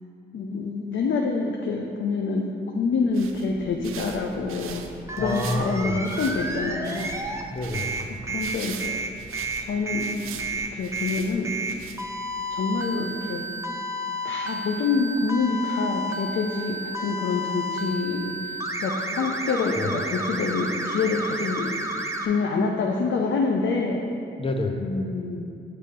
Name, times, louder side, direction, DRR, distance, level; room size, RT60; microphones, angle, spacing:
voice 1, 0.3-4.8 5.1-7.1 8.2-8.9 9.6-11.5 12.5-13.4 14.2-24.0 24.8-25.5, left 4 dB, 65° left, 1 dB, 0.5 m, -27 dB
sound 1, 2.9-12.4, right 5 dB, 85° right, 0.4 m, -41 dB
sound 2, 5.1-7.4 7.7-22.3, right 1 dB, 15° right, 0.7 m, -31 dB
voice 2, 5.2-6.0 7.5-8.1 19.7-19.9 24.4-24.9, left 2 dB, 25° left, 3 dB, 0.7 m, -28 dB
6.6 x 3.3 x 5.1 m, 2.5 s
supercardioid pair, 45°, 21 cm